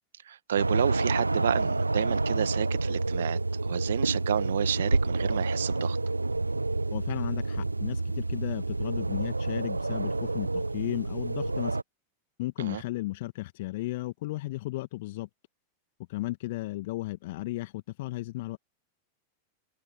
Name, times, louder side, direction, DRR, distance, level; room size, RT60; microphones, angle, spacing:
voice 1, 0.2-6.0 12.6-12.8, right 9 dB, 65° right, 1.7 m, -30 dB
sound 1, 0.6-11.8, right 2 dB, 80° right, 0.4 m, -29 dB
voice 2, 6.9-11.8 12.4-15.3 16.1-18.6, left 18 dB, 50° left, 1.6 m, -34 dB
figure-of-eight pair, 90°, 0 cm